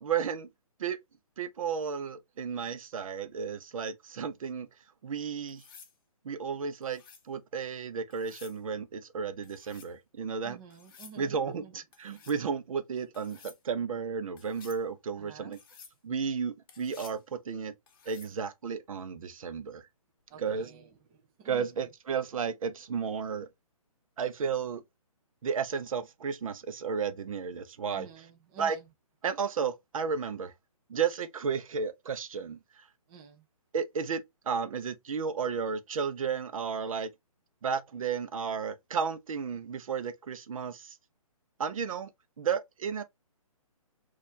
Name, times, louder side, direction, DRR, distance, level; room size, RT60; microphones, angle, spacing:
voice 1, 0.0-0.5 0.8-1.0 1.4-4.7 5.0-5.6 6.2-7.0 7.3-10.6 11.2-15.6 16.0-17.7 18.1-19.8 20.4-20.7 21.5-23.5 24.2-24.8 25.4-28.1 28.6-28.8 29.2-30.5 30.9-32.6 33.7-37.1 37.6-41.0 41.6-42.1 42.4-43.0, right 6 dB, 65° right, 0.6 m, -33 dB
sound 1, 5.5-5.9 6.8-7.3 8.1-8.6 9.4-9.9 10.7-11.2 11.9-12.4 13.1-13.6 14.4-14.8 15.5-16.0 16.7-17.2 17.9-18.4 20.3-20.5, left 6 dB, 40° left, 0.9 m, -53 dB
voice 2, 10.4-11.8 12.1-12.2 15.1-15.6 20.3-21.7 27.9-28.9 33.1-33.5, right 7 dB, 15° right, 0.3 m, -51 dB
4.2 x 2.4 x 3.0 m
hypercardioid pair, 150°, 19 cm